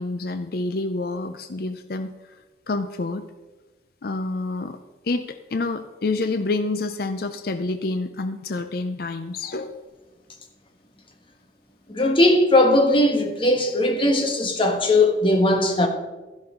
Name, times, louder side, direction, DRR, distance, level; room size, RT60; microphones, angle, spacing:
voice 1, 0.0-2.1 2.7-3.3 4.0-4.8 5.0-9.8, left 3 dB, 55° left, 0.5 m, -28 dB
voice 2, 11.9-15.9, left 1 dB, 30° left, 1.4 m, -19 dB
12.5 x 11.5 x 3.8 m
head